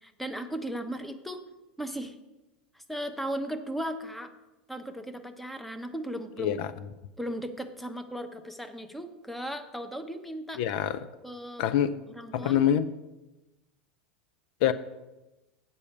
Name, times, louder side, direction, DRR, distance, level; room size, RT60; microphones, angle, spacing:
voice 1, 0.0-1.4 1.8-2.2 2.7-4.3 4.7-6.6 7.2-10.6 11.2-11.6 12.1-12.6, equal, ahead, 7 dB, 0.9 m, -36 dB
voice 2, 6.4-6.7 10.6-11.0 11.6-11.9 12.3-12.9 14.6-14.7, left 10 dB, 60° left, 13 dB, 0.5 m, -25 dB
8.2 x 5.5 x 7.2 m, 1.0 s
hypercardioid pair, 85°, 6 cm